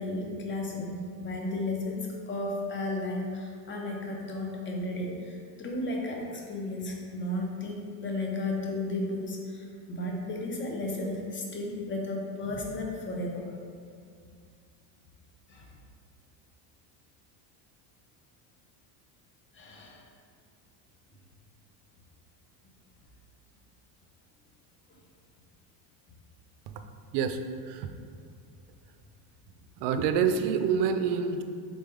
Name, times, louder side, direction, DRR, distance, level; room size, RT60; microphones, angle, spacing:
voice 1, 0.0-13.6 15.5-15.7 19.5-20.1, left 2 dB, 25° left, 0 dB, 0.7 m, -34 dB
voice 2, 27.1-27.9 29.8-31.4, right 6 dB, 60° right, 8 dB, 0.5 m, -27 dB
3.8 x 3.4 x 3.4 m, 2.2 s
supercardioid pair, 105°, 48 cm